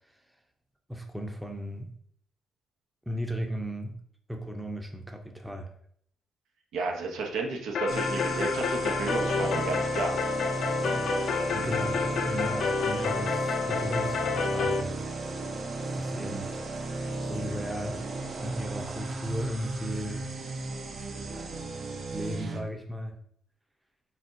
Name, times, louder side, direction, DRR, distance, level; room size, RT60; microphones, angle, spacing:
voice 1, 0.9-1.9 3.1-4.0 4.3-5.7 10.8-11.1 11.5-15.0 15.3-15.5 15.9-16.5 17.2-18.0 18.4-20.3 22.1-23.2, equal, 5° right, 3 dB, 0.6 m, -36 dB
voice 2, 6.7-10.2, right 3 dB, 85° right, 1 dB, 0.8 m, -32 dB
sound 1, 7.7-14.8, left 5 dB, 65° left, 0.5 m, -29 dB
sound 2, 7.9-22.6, right 2 dB, 50° right, 0.6 m, -34 dB
4.2 x 4.0 x 2.6 m, 0.64 s
cardioid pair, 90°, 0 cm